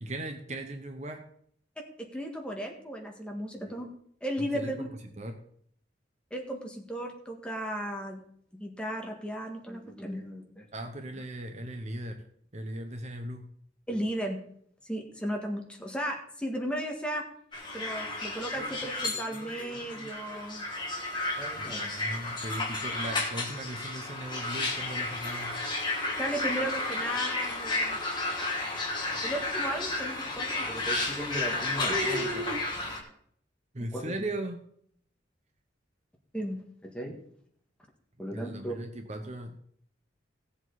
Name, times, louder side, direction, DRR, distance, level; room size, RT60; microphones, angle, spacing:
voice 1, 0.0-1.2 4.4-4.9 5.2-5.4 10.7-12.1 12.5-13.5 21.6-25.6 31.9-32.6 33.7-34.6 38.3-39.6, right 1 dB, 40° right, 5 dB, 1.0 m, -37 dB
voice 2, 2.0-3.9 4.2-4.9 6.3-8.2 8.5-10.7 13.9-14.4 14.9-17.2 17.7-20.7 21.4-21.9 26.2-28.0 29.2-32.3 33.8-34.1 36.3-37.2 38.2-38.8, equal, 5° left, 1 dB, 1.7 m, -35 dB
sound 1, 17.5-33.0, left 2 dB, 25° left, 2.2 m, -32 dB
16.5 x 7.5 x 4.1 m, 0.65 s
head